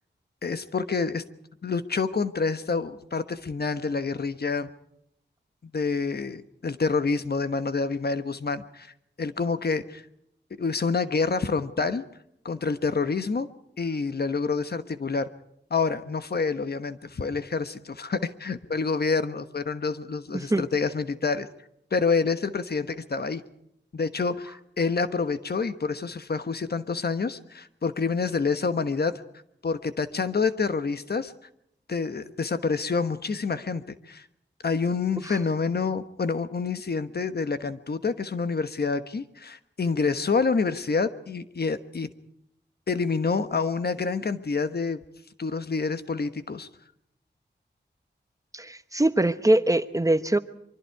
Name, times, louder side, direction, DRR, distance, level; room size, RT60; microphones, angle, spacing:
voice 1, 0.4-1.2 1.6-4.7 5.7-8.9 9.2-10.0 10.6-12.0 12.4-13.5 13.8-15.3 15.7-21.5 21.9-23.4 23.9-29.2 29.6-31.3 31.9-34.3 34.6-42.1 42.9-45.0 45.4-46.7, left 4 dB, 60° left, 11 dB, 1.2 m, -27 dB
voice 2, 20.3-20.6 48.5-50.4, right 1 dB, 15° right, 12 dB, 1.0 m, -22 dB
25.0 x 24.0 x 4.7 m, 0.76 s
wide cardioid pair, 90°, 19 cm